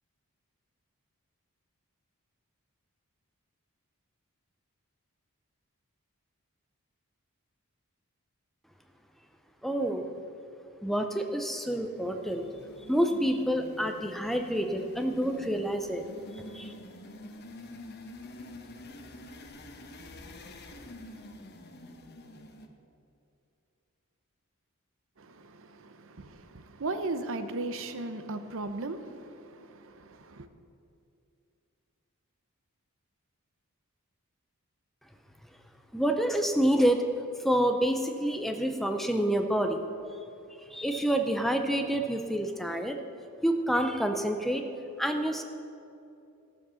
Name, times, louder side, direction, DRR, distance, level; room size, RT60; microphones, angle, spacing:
voice 1, 9.6-10.1 10.8-12.4 12.9-16.0 16.3-16.7 35.9-37.0 37.4-39.8 40.7-43.0 43.4-44.6 45.0-45.4, right 1 dB, ahead, 0.6 m, -28 dB
sound 1, 11.8-22.7, left 1 dB, 45° left, 1.0 m, -47 dB
voice 2, 25.2-30.5, right 2 dB, 60° right, 0.8 m, -37 dB
15.0 x 7.3 x 6.9 m
head